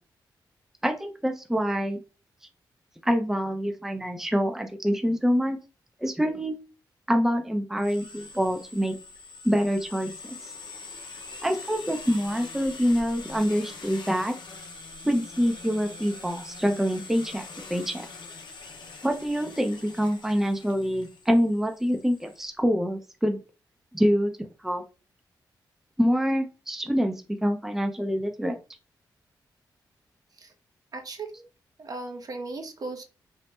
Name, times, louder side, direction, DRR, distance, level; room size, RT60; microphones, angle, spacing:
voice 1, 0.8-2.0 3.0-5.6 6.0-6.6 7.1-9.0 9.4-10.1 10.4-10.5 11.4-14.3 15.0-17.4 17.7-18.1 19.0-23.4 23.9-24.8 26.0-28.6, equal, 5° right, 5 dB, 0.5 m, -26 dB
sound 1, 7.8-22.4, left 3 dB, 70° left, 0.6 m, -43 dB
voice 2, 30.9-31.4 31.8-33.1, right 3 dB, 50° right, 6 dB, 0.6 m, -37 dB
3.0 x 2.1 x 3.1 m, 0.32 s
cardioid pair, 55°, 8 cm